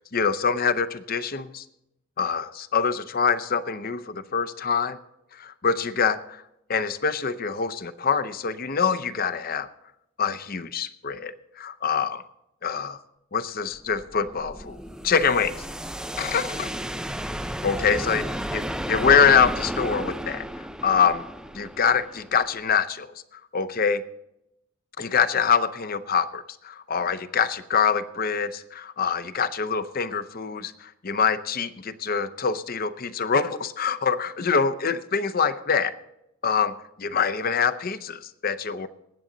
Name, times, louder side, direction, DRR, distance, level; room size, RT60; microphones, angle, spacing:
voice 1, 0.1-1.7 2.2-5.0 5.3-6.4 6.7-9.7 10.2-12.2 12.6-13.0 13.3-15.7 16.2-16.7 17.6-21.2 21.5-24.0 25.0-35.9 36.4-38.9, left 6 dB, 45° left, 13 dB, 0.6 m, -25 dB
sound 1, 13.8-22.7, equal, 5° right, 0.4 m, -33 dB
20.0 x 8.5 x 3.9 m, 0.82 s
head